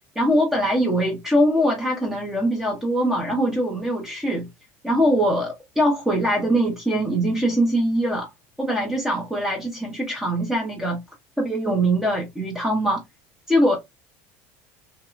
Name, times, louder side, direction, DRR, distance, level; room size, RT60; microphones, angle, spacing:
voice 1, 0.2-4.5 4.8-8.3 8.6-11.0 11.4-13.0 13.5-13.8, equal, 5° right, 0.6 m, -22 dB
2.8 x 2.1 x 2.3 m
cardioid pair, 155°, 7 cm